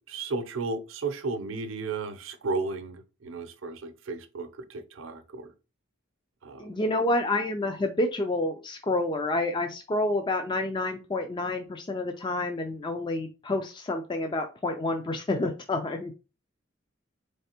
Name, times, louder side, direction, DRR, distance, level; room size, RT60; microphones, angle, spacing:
voice 1, 0.1-5.5 6.4-6.7, right 3 dB, 80° right, 0.6 m, -34 dB
voice 2, 6.6-16.1, left 2 dB, 25° left, 0.3 m, -29 dB
4.0 x 3.3 x 2.8 m
head